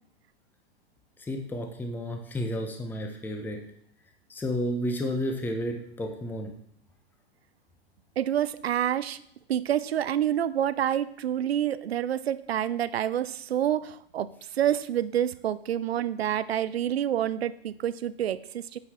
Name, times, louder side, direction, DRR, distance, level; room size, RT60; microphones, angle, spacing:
voice 1, 1.2-3.6 4.3-6.5, equal, 5° left, 4 dB, 0.7 m, -31 dB
voice 2, 8.2-9.2 9.5-18.8, right 10 dB, 80° right, 16 dB, 0.5 m, -28 dB
8.6 x 4.6 x 3.5 m, 0.67 s
figure-of-eight pair, 105°, 31 cm